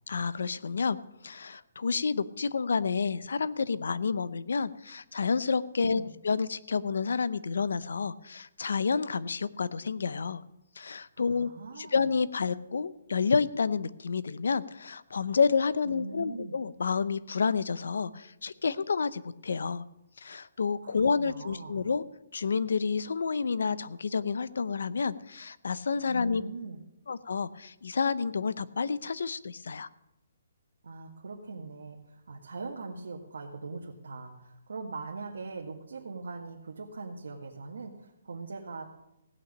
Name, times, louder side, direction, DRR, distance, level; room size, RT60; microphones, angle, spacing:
voice 1, 0.1-1.0 1.2-10.4 10.8-11.5 11.8-19.8 20.2-22.0 22.3-26.4 27.1-29.9, left 5 dB, 70° left, 17 dB, 0.7 m, -29 dB
voice 2, 5.8-6.1 11.2-12.1 15.9-16.5 20.8-21.9 26.1-26.8 30.8-38.9, right 3 dB, 80° right, -2 dB, 1.8 m, -41 dB
17.0 x 6.0 x 8.6 m, 0.88 s
hypercardioid pair, 175°, 0 cm